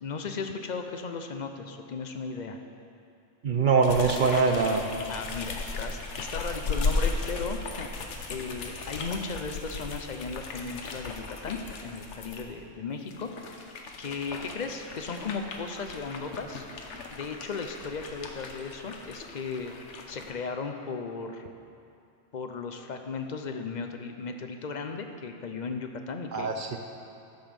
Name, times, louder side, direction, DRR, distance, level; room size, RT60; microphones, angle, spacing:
voice 1, 0.0-2.6 5.1-13.3 14.0-16.6 17.1-19.7 20.1-21.5 22.3-26.5, left 4 dB, 50° left, 6 dB, 0.6 m, -36 dB
voice 2, 3.4-4.9 26.3-26.8, right 4 dB, 55° right, 4 dB, 0.6 m, -23 dB
sound 1, 3.8-12.4 13.0-20.3, left 3 dB, 70° left, 1.2 m, -36 dB
11.5 x 7.1 x 5.2 m, 2.5 s
omnidirectional pair, 1.3 m